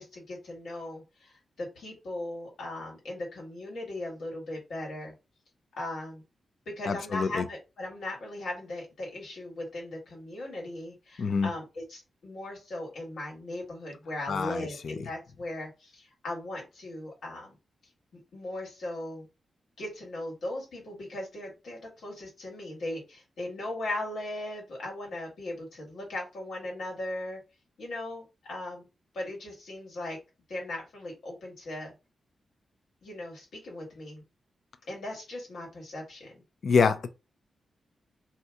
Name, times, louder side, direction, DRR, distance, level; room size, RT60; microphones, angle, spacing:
voice 1, 0.0-5.1 5.8-6.2 6.6-17.6 18.1-19.3 19.8-27.4 27.8-28.9 29.1-30.2 30.5-31.9 33.0-34.2 34.9-36.4, left 1 dB, 75° left, 1.6 m, -38 dB
voice 2, 6.9-7.4 11.2-11.5 14.3-15.0 36.6-37.1, left 5 dB, 55° left, 0.4 m, -26 dB
2.8 x 2.3 x 3.5 m
wide cardioid pair, 145°, 0 cm